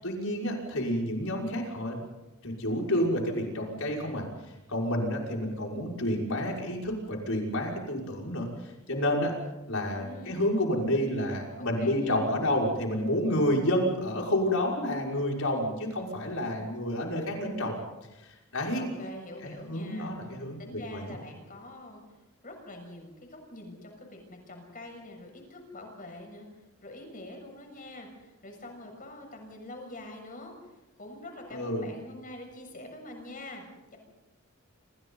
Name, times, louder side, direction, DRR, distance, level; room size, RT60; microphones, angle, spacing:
voice 1, 0.0-2.1 2.4-4.3 4.7-9.3 9.7-17.8 18.2-18.9 19.4-21.1 31.5-31.8, left 1 dB, 70° left, -1 dB, 6.0 m, -29 dB
voice 2, 10.0-10.4 11.6-12.2 18.8-22.0 22.4-26.5 26.8-33.6 33.9-34.0, left 1 dB, 40° left, 2 dB, 6.7 m, -45 dB
28.0 x 27.5 x 4.1 m, 1.0 s
head